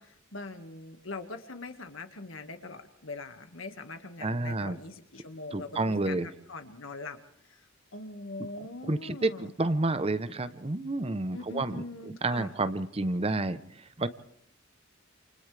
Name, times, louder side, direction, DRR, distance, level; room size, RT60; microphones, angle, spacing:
voice 1, 0.0-7.2 7.5-7.6 7.9-9.5 11.3-12.5, left 3 dB, 75° left, 7 dB, 1.9 m, -42 dB
voice 2, 4.2-4.8 5.5-6.3 8.8-11.8 12.2-13.6 14.0-14.1, right 2 dB, 30° right, 12 dB, 0.8 m, -29 dB
29.0 x 28.5 x 3.4 m, 0.70 s
head